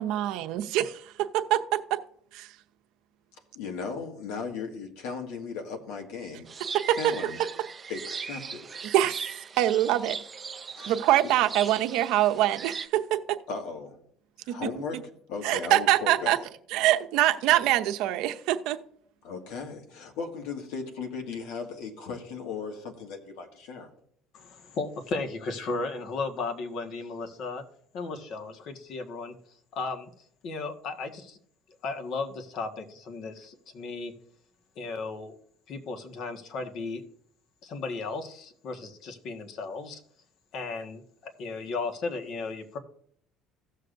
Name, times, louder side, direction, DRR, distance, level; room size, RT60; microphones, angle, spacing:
voice 1, 0.0-2.0 2.3-2.5 6.7-7.1 8.8-9.3 9.6-10.2 10.9-13.4 14.5-14.6 15.4-16.4 16.7-18.8, right 13 dB, 75° right, 7 dB, 0.7 m, -24 dB
voice 2, 3.3-7.4 7.9-8.8 10.8-11.0 13.5-14.0 14.4-15.0 15.3-16.4 19.2-23.9, left 5 dB, 85° left, 4 dB, 1.8 m, -37 dB
sound 1, 6.5-12.9, right 5 dB, 30° right, 0.6 m, -39 dB
voice 3, 24.3-27.6 27.9-29.3 29.7-30.1 30.4-31.4 31.8-34.1 34.7-35.4 35.7-37.0 37.6-40.0 40.5-42.8, left 3 dB, 60° left, 5 dB, 1.5 m, -35 dB
16.5 x 6.6 x 2.6 m, 0.66 s
cardioid pair, 110°, 0 cm